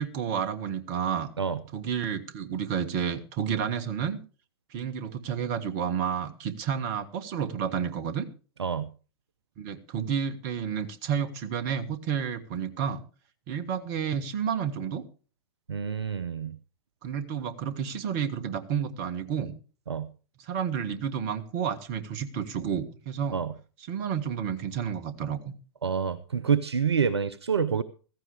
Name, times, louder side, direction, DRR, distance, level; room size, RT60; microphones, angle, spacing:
voice 1, 0.0-1.3 1.7-4.2 4.7-8.3 9.6-13.0 13.5-15.0 17.0-19.5 20.4-23.4 23.9-25.5, right 8 dB, 40° right, 12 dB, 1.6 m, -30 dB
voice 2, 15.7-16.5 19.9-20.1 23.3-23.5 25.8-27.8, right 6 dB, 70° right, 17 dB, 0.7 m, -27 dB
15.5 x 14.5 x 3.3 m, 0.37 s
figure-of-eight pair, 100°, 14 cm